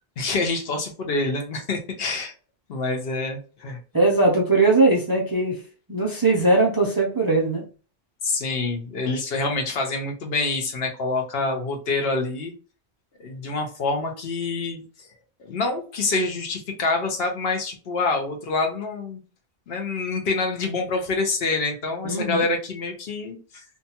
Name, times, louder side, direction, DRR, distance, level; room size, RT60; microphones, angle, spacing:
voice 1, 0.2-2.3 2.7-3.8 8.2-12.5 13.2-15.1 15.4-19.2 19.7-23.6, left 3 dB, 75° left, 0.9 m, -26 dB
voice 2, 3.9-5.6 5.9-7.7 22.0-22.4, right 2 dB, 35° right, 0.3 m, -20 dB
2.7 x 2.3 x 2.7 m
omnidirectional pair, 1.0 m